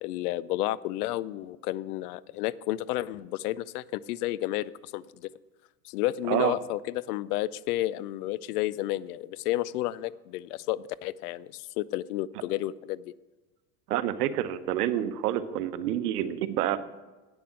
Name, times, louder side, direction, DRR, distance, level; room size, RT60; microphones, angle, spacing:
voice 1, 0.0-5.3 5.8-13.1, left 15 dB, 75° left, 20 dB, 0.6 m, -31 dB
voice 2, 13.9-16.8, right 12 dB, 80° right, 13 dB, 0.9 m, -28 dB
9.2 x 6.9 x 7.5 m, 1.2 s
hypercardioid pair, 100°, 46 cm